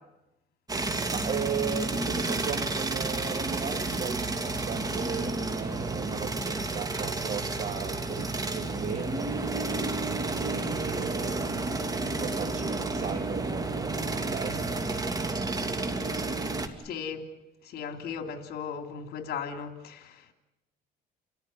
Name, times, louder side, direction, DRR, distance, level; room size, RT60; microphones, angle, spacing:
sound 1, 0.7-16.7, right 3 dB, 20° right, 2.6 m, -31 dB
voice 1, 1.1-14.8, right 6 dB, 40° right, 5 dB, 3.1 m, -36 dB
voice 2, 16.8-17.3 17.6-20.3, left 6 dB, 70° left, 7 dB, 3.0 m, -37 dB
30.0 x 15.0 x 10.0 m, 0.95 s
cardioid pair, 110°, 17 cm